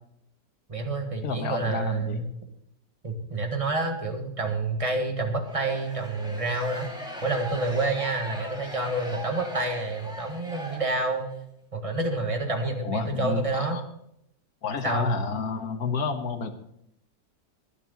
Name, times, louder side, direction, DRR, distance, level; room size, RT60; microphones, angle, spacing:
voice 1, 0.7-2.3 3.0-6.9 7.2-11.3 11.7-13.8 14.8-15.1, right 2 dB, 20° right, 4 dB, 1.6 m, -28 dB
voice 2, 1.2-2.2 12.8-13.8 14.6-16.5, left 5 dB, 60° left, 7 dB, 1.7 m, -30 dB
sound 1, 5.4-11.3, equal, ahead, 2.1 m, -39 dB
22.5 x 7.6 x 4.0 m, 0.76 s
omnidirectional pair, 1.9 m